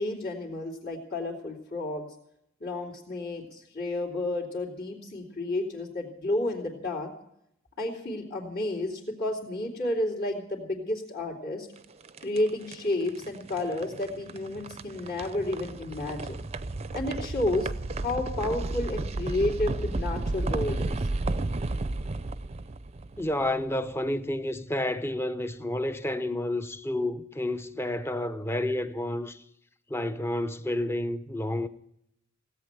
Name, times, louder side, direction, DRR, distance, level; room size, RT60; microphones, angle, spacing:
voice 1, 0.0-2.1 2.6-7.1 7.8-11.7 12.2-16.4 16.9-17.7 18.0-21.0, left 1 dB, 55° left, 3.3 m, -31 dB
sound 1, 11.8-23.8, right 2 dB, 30° right, 0.6 m, -33 dB
voice 2, 23.2-29.4 29.9-31.7, left 1 dB, 10° left, 0.7 m, -30 dB
17.5 x 8.5 x 9.0 m
head